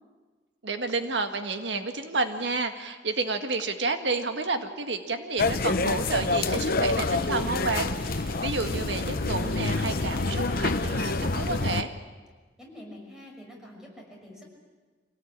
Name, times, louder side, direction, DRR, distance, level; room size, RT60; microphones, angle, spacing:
voice 1, 0.6-11.9, right 3 dB, 70° right, 6 dB, 1.7 m, -30 dB
sound 1, 5.4-11.8, left 3 dB, 55° left, 0.9 m, -27 dB
sound 2, 5.9-11.6, right 3 dB, 55° right, 3.7 m, -49 dB
voice 2, 12.6-14.4, left 1 dB, 5° right, -1 dB, 6.1 m, -46 dB
25.5 x 18.0 x 8.8 m, 1.4 s
head